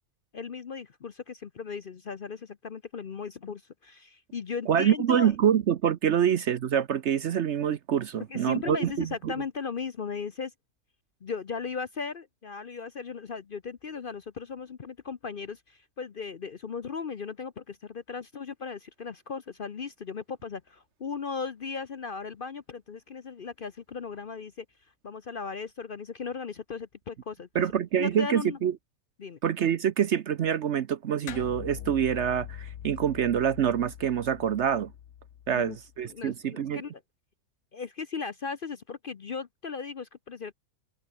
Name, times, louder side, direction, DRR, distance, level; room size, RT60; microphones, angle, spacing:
voice 1, 0.3-5.3 8.3-10.5 11.2-24.7 25.0-27.6 28.0-28.6 29.2-29.4 35.5-36.9 37.7-40.5, left 5 dB, 45° left, 0.8 m, -37 dB
voice 2, 4.7-9.3 27.5-28.7 29.4-34.9 35.5-36.8, right 9 dB, 60° right, 0.9 m, -26 dB
sound 1, 31.3-36.0, left 10 dB, 65° left, 1.2 m, -43 dB
omnidirectional pair, 1.6 m